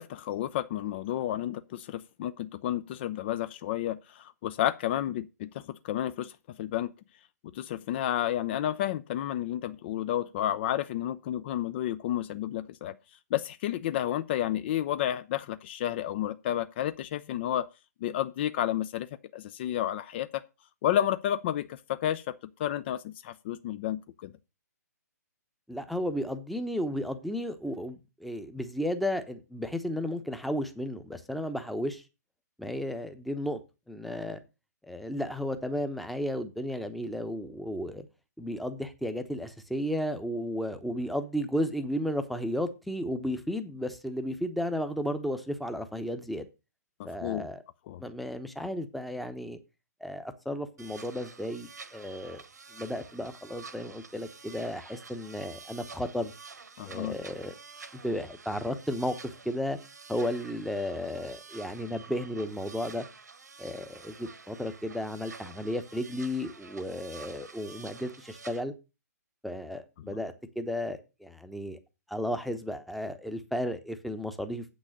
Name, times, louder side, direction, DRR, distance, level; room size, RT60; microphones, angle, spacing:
voice 1, 0.0-6.3 6.6-6.9 7.5-12.9 13.3-17.7 18.0-19.1 19.3-20.4 20.8-24.3 47.2-47.5 47.9-48.0 56.8-57.2 70.1-70.2, left 11 dB, 40° left, 0.6 m, -31 dB
voice 2, 25.7-32.0 32.6-33.6 33.9-34.4 34.8-38.0 38.4-46.5 47.0-47.6 48.0-49.6 50.0-52.4 52.7-56.3 56.9-57.5 57.9-59.8 60.1-63.1 63.6-68.7 69.4-71.8 72.1-74.6, equal, ahead, 0.9 m, -33 dB
sound 1, 50.8-68.6, right 5 dB, 75° right, 1.4 m, -49 dB
8.3 x 6.3 x 6.4 m
figure-of-eight pair, 130°, 9 cm